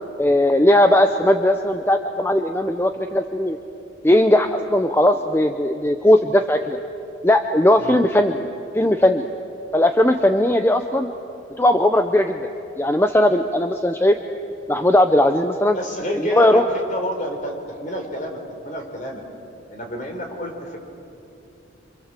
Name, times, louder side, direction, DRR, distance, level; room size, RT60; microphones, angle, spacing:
voice 1, 0.2-3.6 4.0-6.8 7.2-8.4 8.7-9.3 9.7-11.1 11.6-12.5 12.8-14.2 14.7-15.8 16.2-16.6, left 1 dB, 10° left, 6 dB, 0.7 m, -18 dB
voice 2, 15.7-19.2 19.7-20.8, equal, 40° left, 3 dB, 4.2 m, -29 dB
27.0 x 26.5 x 7.6 m, 2.7 s
head